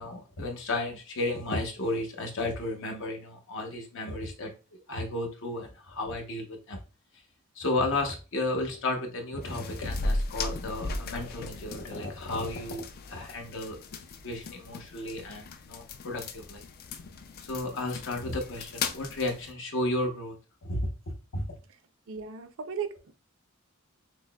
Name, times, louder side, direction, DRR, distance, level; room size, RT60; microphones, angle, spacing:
voice 1, 0.0-6.8 7.6-12.8 13.1-13.8 14.2-16.6 17.5-20.4 20.6-20.8 21.3-21.4, left 2 dB, 65° left, 3 dB, 0.8 m, -33 dB
sound 1, 9.4-19.5, left 3 dB, 50° left, 0.4 m, -37 dB
voice 2, 22.1-23.1, right 6 dB, 65° right, 10 dB, 0.5 m, -36 dB
6.0 x 2.0 x 2.2 m, 0.32 s
head